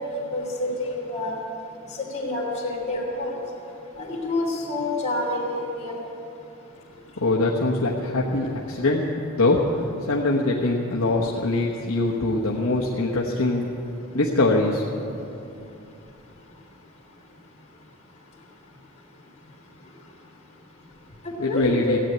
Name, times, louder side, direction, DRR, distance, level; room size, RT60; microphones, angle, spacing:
voice 1, 0.3-1.3 2.0-3.3 4.0-6.0 21.4-22.0, left 2 dB, 30° left, -9 dB, 3.2 m, -27 dB
voice 2, 7.2-9.1 9.4-13.7 14.1-14.9 21.4-22.0, left 2 dB, 75° left, -4 dB, 1.3 m, -23 dB
15.5 x 8.9 x 9.4 m, 2.8 s
head